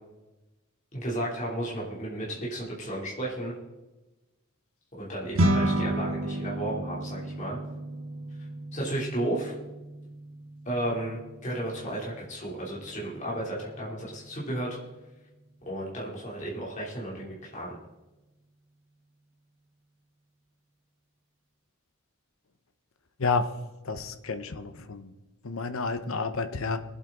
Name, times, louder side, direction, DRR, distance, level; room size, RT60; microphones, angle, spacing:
voice 1, 0.9-3.5 5.0-7.6 8.7-9.5 10.6-14.8 15.6-17.8, right 1 dB, 35° left, -5 dB, 3.1 m, -33 dB
sound 1, 5.4-14.8, right 1 dB, 75° right, 1.4 m, -33 dB
voice 2, 23.8-25.1 25.4-26.8, left 4 dB, 80° left, 10 dB, 0.9 m, -30 dB
21.5 x 8.4 x 3.9 m, 1.1 s
head